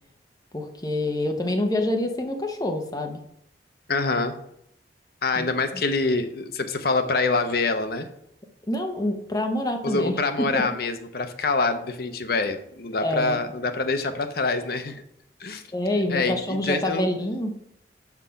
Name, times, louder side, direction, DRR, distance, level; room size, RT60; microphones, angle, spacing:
voice 1, 0.5-3.2 5.3-5.5 8.7-10.6 13.0-13.4 15.7-17.5, left 1 dB, 20° left, 3 dB, 0.9 m, -26 dB
voice 2, 3.9-4.3 5.2-8.1 9.8-15.0 15.4-15.6 16.1-17.1, left 3 dB, 60° left, 8 dB, 0.7 m, -25 dB
6.0 x 4.9 x 5.7 m, 0.72 s
head